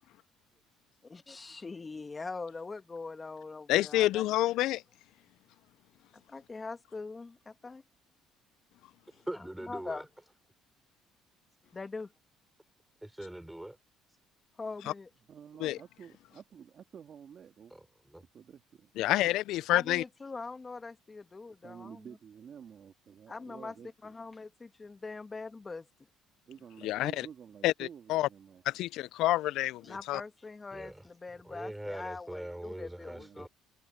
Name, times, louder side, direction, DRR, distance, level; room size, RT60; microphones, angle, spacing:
voice 1, 1.0-4.2 6.3-7.8 9.7-10.1 11.7-12.1 14.6-15.1 19.7-22.0 23.3-23.7 24.0-25.9 29.8-33.5, left 3 dB, 25° left, 2.1 m, -42 dB
voice 2, 3.7-4.8 15.6-15.8 19.0-20.0 26.8-27.3 27.6-28.3 28.7-29.8 30.1-30.2, left 16 dB, 75° left, 0.3 m, -28 dB
voice 3, 9.1-10.1 13.0-13.8 14.1-14.2 17.7-18.2 30.7-31.1 31.4-33.5, right 1 dB, 5° right, 3.9 m, -42 dB
voice 4, 15.3-17.8 18.2-18.9 21.6-24.1 26.5-28.6 33.0-33.5, right 8 dB, 50° right, 2.6 m, -51 dB
supercardioid pair, 95°, 0 cm